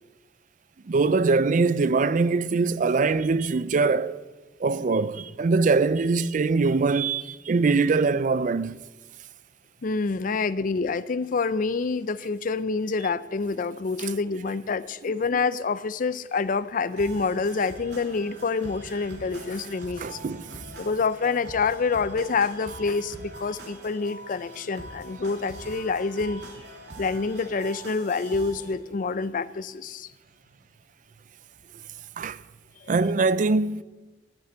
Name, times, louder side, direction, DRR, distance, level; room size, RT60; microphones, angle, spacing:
voice 1, 0.9-4.2 4.6-8.8 14.0-14.1 20.0-20.6 32.2-32.4 32.9-33.8, right 4 dB, 45° right, 0.4 m, -23 dB
voice 2, 9.8-20.2 20.8-26.4 27.0-30.1 32.8-32.9, left 4 dB, 50° left, 0.5 m, -27 dB
sound 1, 17.0-28.7, right 1 dB, 70° right, 2.9 m, -43 dB
11.5 x 8.4 x 7.9 m
head